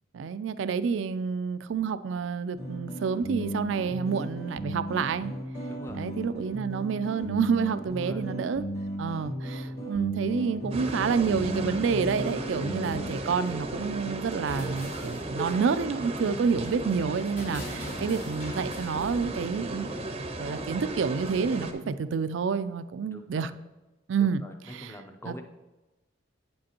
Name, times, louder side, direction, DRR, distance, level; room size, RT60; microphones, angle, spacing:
voice 1, 0.1-5.3 5.9-8.6 9.0-19.9 20.4-23.5 24.1-24.4 24.7-24.9 25.3-25.4, right 6 dB, 70° right, 13 dB, 0.4 m, -29 dB
sound 1, 2.6-13.2, right 1 dB, 55° left, 1.7 m, -35 dB
voice 2, 5.7-6.1 7.8-8.3 9.7-9.9 13.6-13.9 16.2-16.4 21.7-22.0 23.1-23.5 24.2-24.5 24.8-25.4, equal, 15° left, 5 dB, 0.6 m, -45 dB
sound 2, 10.7-21.7, right 2 dB, 30° right, 0.6 m, -36 dB
sound 3, 14.4-19.3, left 1 dB, 80° left, 2.9 m, -43 dB
8.5 x 7.6 x 2.9 m, 1.1 s
head